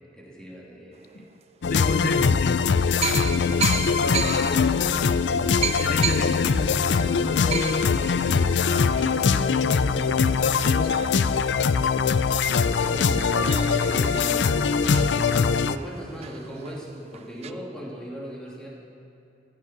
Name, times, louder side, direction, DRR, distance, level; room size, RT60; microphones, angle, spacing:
voice 1, 0.1-1.2 2.9-3.4 9.7-9.9 12.8-18.7, equal, 5° left, 2.6 m, -38 dB
sound 1, 1.3-1.4 2.3-2.4 3.0-12.2 12.5-12.6 12.8-17.5, right 7 dB, 35° right, 0.5 m, -35 dB
sound 2, 1.6-15.8, left 5 dB, 75° left, 0.4 m, -22 dB
voice 2, 1.6-2.7 3.0-5.2 5.6-11.2, left 2 dB, 55° left, 0.9 m, -31 dB
15.5 x 12.5 x 6.0 m
head